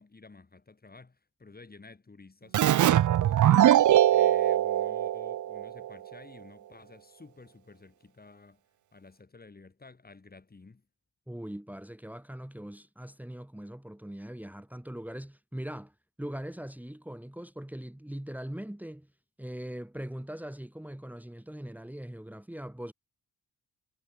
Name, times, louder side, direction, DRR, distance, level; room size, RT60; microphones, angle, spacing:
voice 1, 0.0-8.6 8.9-10.8, left 3 dB, 25° left, 3.9 m, -52 dB
Keyboard (musical), 2.5-5.9, right 12 dB, 50° right, 0.5 m, -22 dB
voice 2, 11.3-19.1 19.4-22.9, right 1 dB, 5° right, 3.3 m, -41 dB
wide cardioid pair, 145°, 39 cm